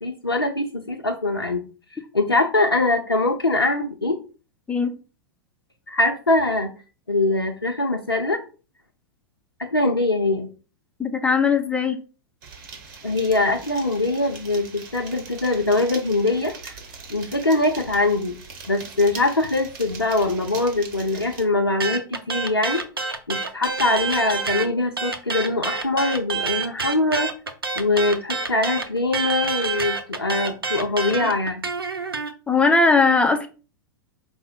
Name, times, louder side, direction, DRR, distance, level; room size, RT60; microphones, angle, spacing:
voice 1, 0.0-1.6 1.9-4.2 5.9-6.7 7.1-8.4 9.6-10.5 13.0-16.8 17.1-18.4 18.7-22.8 23.3-27.3 27.8-31.6, left 2 dB, 90° left, 0.6 m, -22 dB
voice 2, 11.0-12.0 32.5-33.5, left 4 dB, 10° left, 0.5 m, -19 dB
sound 1, 12.4-21.4, right 4 dB, 55° right, 1.1 m, -41 dB
sound 2, 21.8-24.7 25.0-32.3, right 4 dB, 85° right, 0.6 m, -27 dB
4.9 x 2.1 x 4.2 m
figure-of-eight pair, 95°, 12 cm